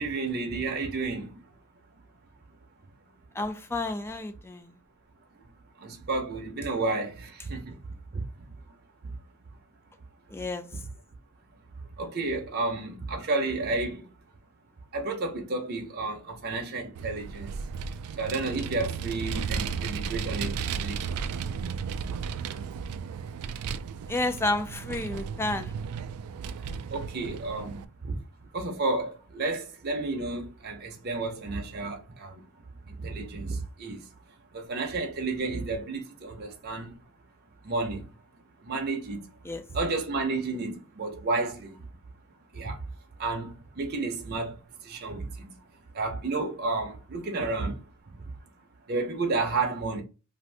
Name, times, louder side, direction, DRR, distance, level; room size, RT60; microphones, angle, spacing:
voice 1, 0.0-1.4 5.8-7.8 8.1-8.6 9.0-9.2 10.7-10.8 12.0-14.1 14.9-17.6 18.2-21.2 22.0-22.1 26.5-26.6 26.9-28.2 28.5-32.5 32.8-34.1 34.5-37.0 37.6-38.2 38.6-39.3 39.7-41.8 42.5-42.9 43.2-45.6 45.9-47.8 48.1-48.2 48.9-50.0, right 3 dB, 45° right, 0.6 m, -31 dB
voice 2, 3.3-4.8 10.3-10.7 24.1-25.7 39.4-39.6, left 2 dB, 10° left, 0.3 m, -31 dB
Vehicle, 17.0-27.8, right 6 dB, 85° right, 0.3 m, -34 dB
2.6 x 2.5 x 3.2 m
head